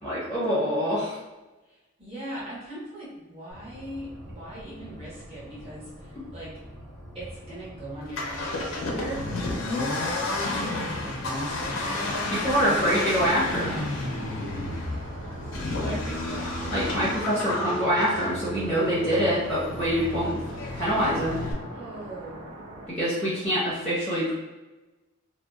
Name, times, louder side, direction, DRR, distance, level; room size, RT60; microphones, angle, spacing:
voice 1, 0.0-1.2 12.3-13.9 16.7-20.4 20.7-21.4 22.9-24.3, equal, 5° left, -9 dB, 0.6 m, -25 dB
voice 2, 1.7-6.5 7.1-12.9 15.0-15.1 15.6-16.9 20.8-22.6, right 1 dB, 25° right, -8 dB, 0.8 m, -40 dB
sound 1, 3.5-17.2, equal, 65° right, 1.2 m, -44 dB
Accelerating revving vroom, 8.0-21.5, left 2 dB, 75° left, 0.5 m, -31 dB
sound 2, 10.7-22.9, right 1 dB, 80° right, 0.4 m, -42 dB
2.7 x 2.1 x 2.2 m, 1.1 s
head